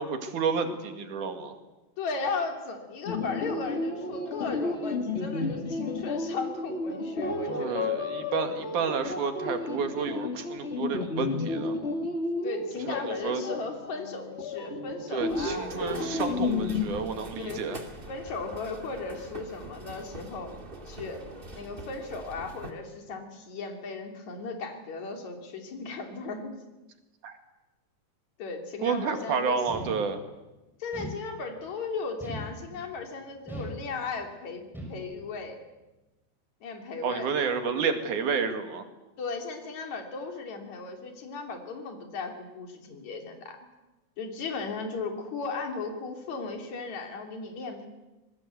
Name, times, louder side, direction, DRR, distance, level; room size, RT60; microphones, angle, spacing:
voice 1, 0.0-1.6 7.5-11.8 12.9-13.4 15.1-17.8 27.2-27.4 28.8-30.2 37.0-38.9, right 5 dB, 85° right, 7 dB, 3.6 m, -30 dB
voice 2, 2.0-7.9 12.4-16.4 17.4-17.6 18.1-20.5 20.9-21.2 21.5-26.6 28.4-29.8 30.8-35.6 36.6-37.3 39.2-43.6 44.2-47.9, left 4 dB, 70° left, 4 dB, 4.3 m, -36 dB
sound 1, 3.1-16.8, left 3 dB, 25° left, 1.7 m, -32 dB
sound 2, 15.3-22.7, right 2 dB, 20° right, 2.1 m, -43 dB
sound 3, 29.7-30.4 30.9-31.7 32.2-33.0 33.5-34.3 34.7-35.3, right 1 dB, ahead, 5.8 m, -40 dB
26.0 x 21.0 x 8.2 m, 1.1 s
omnidirectional pair, 3.4 m